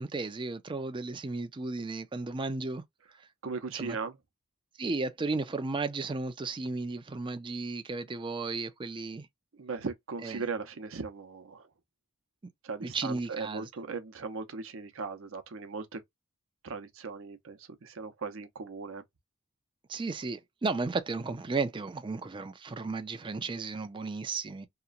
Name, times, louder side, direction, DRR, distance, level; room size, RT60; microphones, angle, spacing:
voice 1, 0.0-2.8 3.7-4.0 4.8-9.3 10.2-10.4 12.8-13.7 19.9-24.7, right 3 dB, 25° right, 0.4 m, -34 dB
voice 2, 3.4-4.2 9.6-11.7 12.6-16.0 16.6-19.0, right 4 dB, 65° right, 0.7 m, -38 dB
2.9 x 2.1 x 2.4 m
head